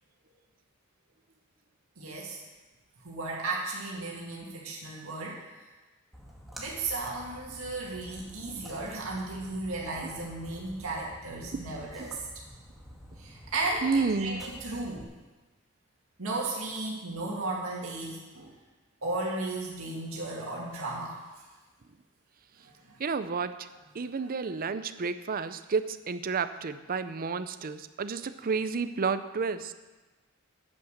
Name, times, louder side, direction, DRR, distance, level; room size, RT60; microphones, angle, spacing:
voice 1, 2.0-2.4 3.0-5.5 6.6-12.2 13.2-15.1 16.2-18.5 19.0-21.2 22.6-23.0, right 2 dB, 75° right, -3 dB, 2.2 m, -35 dB
Splash splatter, 6.1-15.0, equal, ahead, 1.7 m, -49 dB
voice 2, 11.5-12.1 13.8-14.4 23.0-23.7 23.9-29.7, right 5 dB, 45° right, 12 dB, 0.5 m, -31 dB
9.5 x 8.6 x 6.6 m, 1.2 s
head